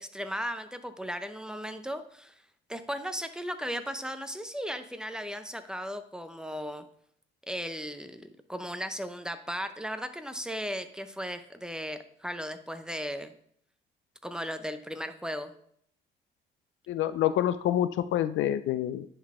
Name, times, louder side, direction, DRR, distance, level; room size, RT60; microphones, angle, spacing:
voice 1, 0.0-2.3 2.7-6.8 7.5-13.3 14.2-15.5, equal, 5° right, 9 dB, 0.7 m, -36 dB
voice 2, 16.9-19.1, left 12 dB, 80° left, 12 dB, 0.5 m, -27 dB
10.0 x 4.0 x 3.6 m, 0.64 s
cardioid pair, 90°, 20 cm